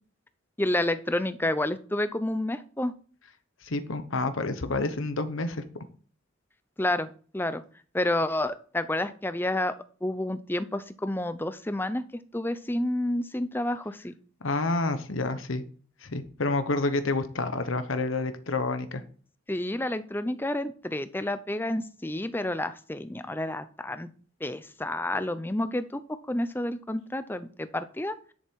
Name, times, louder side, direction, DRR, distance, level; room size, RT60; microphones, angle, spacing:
voice 1, 0.6-2.9 6.8-7.6 7.9-9.7 10.0-14.1 19.5-24.1 24.4-28.2, left 1 dB, 10° left, 12 dB, 0.6 m, -30 dB
voice 2, 3.6-5.6 14.4-15.6 16.0-19.0, left 2 dB, 80° left, 10 dB, 1.0 m, -29 dB
10.5 x 6.9 x 4.6 m, 0.43 s
head